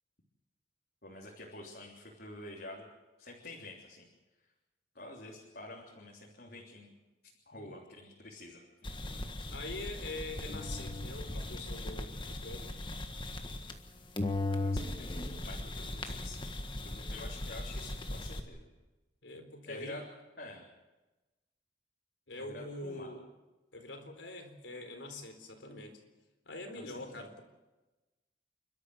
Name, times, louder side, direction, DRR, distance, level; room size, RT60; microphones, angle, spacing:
voice 1, 1.0-2.8 3.2-4.1 4.9-6.9 7.5-8.7 14.5-16.5 16.8-18.7 19.7-20.0 20.4-20.6 22.4-23.1 26.8-27.2, left 2 dB, 55° left, -3 dB, 3.4 m, -48 dB
sound 1, 8.8-13.9 14.2-18.4, left 2 dB, 25° left, 1.6 m, -38 dB
voice 2, 9.5-12.7 19.2-20.0 22.3-23.2 23.7-26.0 26.5-27.4, left 2 dB, 90° left, 6 dB, 4.1 m, -44 dB
29.0 x 13.0 x 8.2 m, 1.1 s
head